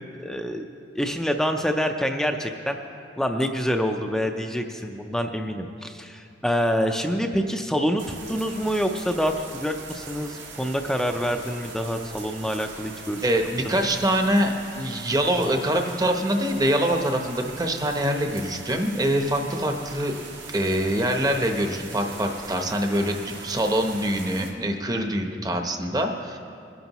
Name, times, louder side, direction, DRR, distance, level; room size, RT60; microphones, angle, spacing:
voice 1, 0.2-0.7 0.9-2.8 3.2-13.3 13.7-13.9, equal, 5° left, 4 dB, 0.5 m, -26 dB
sound 1, 8.0-24.5, right 4 dB, 75° right, 1.7 m, -41 dB
voice 2, 13.2-20.1 20.5-26.4, right 1 dB, 20° right, 4 dB, 0.8 m, -24 dB
21.5 x 11.0 x 3.0 m, 2.4 s
head